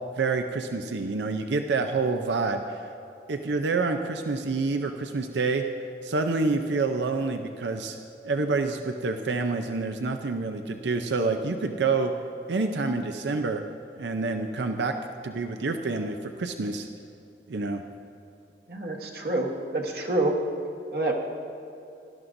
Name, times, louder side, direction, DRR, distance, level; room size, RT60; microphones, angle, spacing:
voice 1, 0.2-2.8 3.3-5.6 6.0-8.0 8.2-12.1 12.5-13.6 14.0-14.9 15.2-16.9 17.5-17.8, right 3 dB, 85° right, 6 dB, 0.6 m, -27 dB
voice 2, 18.7-20.3 20.9-21.1, right 2 dB, 60° right, 0 dB, 1.3 m, -27 dB
17.0 x 12.5 x 2.6 m, 2.7 s
head